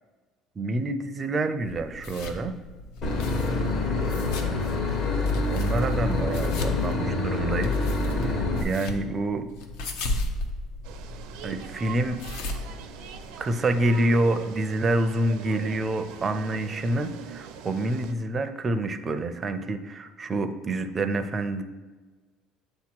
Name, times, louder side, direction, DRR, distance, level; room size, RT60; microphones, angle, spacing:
voice 1, 0.6-2.6 4.0-5.1 5.5-7.7 8.0-9.5 11.4-12.2 13.4-21.6, right 2 dB, 25° right, 8 dB, 0.4 m, -28 dB
sound 1, 1.6-13.6, left 2 dB, 80° left, 0.8 m, -36 dB
Boat Water vehicle / Engine, 3.0-8.6, left 3 dB, 50° left, 1.0 m, -26 dB
sound 2, 10.8-18.1, right 7 dB, 80° right, 0.5 m, -43 dB
7.9 x 2.9 x 6.0 m, 1.3 s
cardioid pair, 140°, 0 cm